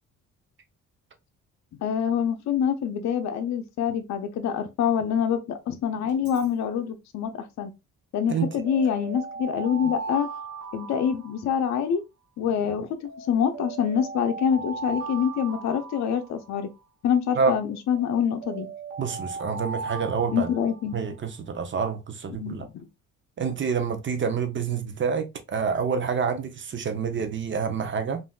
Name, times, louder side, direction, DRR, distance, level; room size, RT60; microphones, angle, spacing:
voice 1, 1.8-7.7 8.1-10.3 10.7-12.0 12.4-16.7 17.0-18.7 20.3-21.0 22.4-22.9, left 8 dB, 65° left, 0.6 m, -26 dB
Alarm, 6.1-6.5 8.2-11.9 13.1-16.8 17.9-21.1, right 4 dB, 85° right, 1.0 m, -38 dB
voice 2, 19.0-20.5 20.9-22.6 23.4-28.2, right 6 dB, 40° right, 0.6 m, -27 dB
3.4 x 2.5 x 2.3 m
cardioid pair, 90°, 30 cm